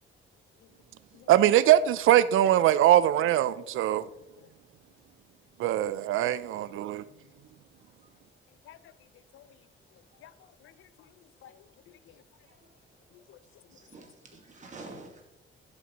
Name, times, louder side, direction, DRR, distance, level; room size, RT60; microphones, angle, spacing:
voice 1, 1.3-4.1 5.6-7.0, right 12 dB, 75° right, 0.4 m, -22 dB
voice 2, 8.6-9.6 9.9-12.2 13.1-13.4 13.7-13.8, left 10 dB, 80° left, 0.5 m, -56 dB
voice 3, 12.5-12.8 13.1-15.2, right 3 dB, 35° right, 1.8 m, -50 dB
11.0 x 5.2 x 2.9 m
cardioid pair, 140°, 21 cm